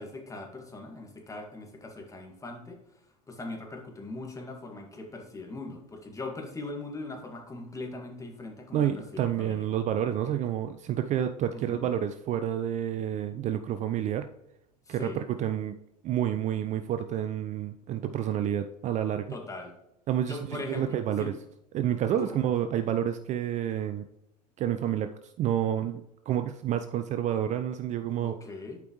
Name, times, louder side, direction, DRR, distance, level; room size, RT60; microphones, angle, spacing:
voice 1, 0.0-2.8 3.3-9.6 11.5-11.9 14.9-15.2 19.3-19.7 20.3-21.3 22.2-22.3 28.2-28.8, left 2 dB, 15° left, 1 dB, 1.9 m, -40 dB
voice 2, 8.7-14.3 14.9-15.8 16.0-19.4 20.1-21.3 21.7-24.1 24.6-28.3, right 10 dB, 35° right, 10 dB, 0.5 m, -29 dB
11.5 x 5.2 x 3.1 m, 0.84 s
hypercardioid pair, 85°, 21 cm